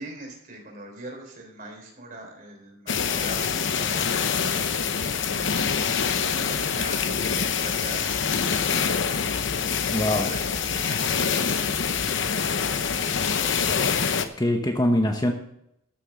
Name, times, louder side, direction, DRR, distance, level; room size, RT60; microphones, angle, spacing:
voice 1, 0.0-4.6 4.9-9.4 10.3-14.0, right 2 dB, 40° right, 1 dB, 3.8 m, -42 dB
sound 1, 2.9-14.2, left 6 dB, 60° left, 0.8 m, -25 dB
voice 2, 9.9-10.3 14.4-15.3, left 1 dB, 20° left, 4 dB, 0.9 m, -23 dB
13.0 x 7.2 x 6.4 m, 0.79 s
head